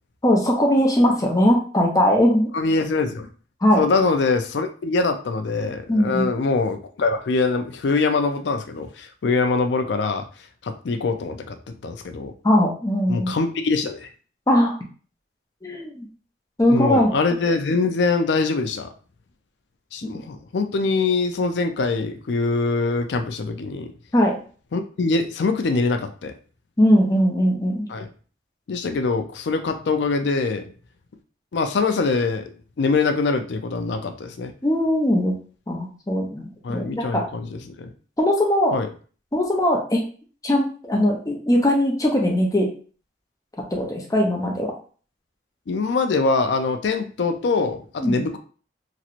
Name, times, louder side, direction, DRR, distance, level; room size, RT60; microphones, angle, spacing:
voice 1, 0.2-2.5 3.6-3.8 5.9-6.3 12.4-13.3 14.5-14.7 15.6-16.1 16.6-17.1 24.1-24.4 26.8-27.9 34.6-35.3 35.7-37.2 38.2-38.7 39.3-40.0 40.4-42.7 43.7-44.7 48.0-48.3, equal, 20° left, 0 dB, 0.6 m, -20 dB
voice 2, 2.5-3.3 3.8-10.3 10.6-12.3 13.1-14.1 16.7-18.9 19.9-23.9 24.7-26.3 27.9-28.1 28.7-30.7 31.5-32.4 32.8-34.5 36.6-37.9 38.7-38.9 45.7-48.4, left 3 dB, 75° left, 8 dB, 0.4 m, -23 dB
3.0 x 2.8 x 2.5 m, 0.41 s
head